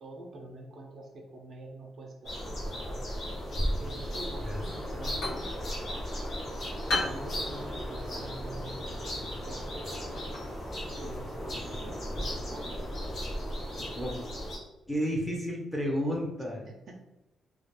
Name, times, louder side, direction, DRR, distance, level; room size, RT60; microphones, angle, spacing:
voice 1, 0.0-3.0 3.8-5.5 6.9-10.0 11.0-13.0 15.1-15.2 16.7-17.0, right 2 dB, 55° right, 1 dB, 0.4 m, -46 dB
sound 1, 2.2-14.6, equal, 55° left, 0.8 m, -35 dB
sound 2, 4.9-12.3, left 2 dB, 90° left, 0.9 m, -39 dB
voice 2, 14.9-16.7, equal, 5° left, -2 dB, 0.6 m, -31 dB
2.2 x 2.2 x 3.0 m, 0.94 s
cardioid pair, 120°, 0 cm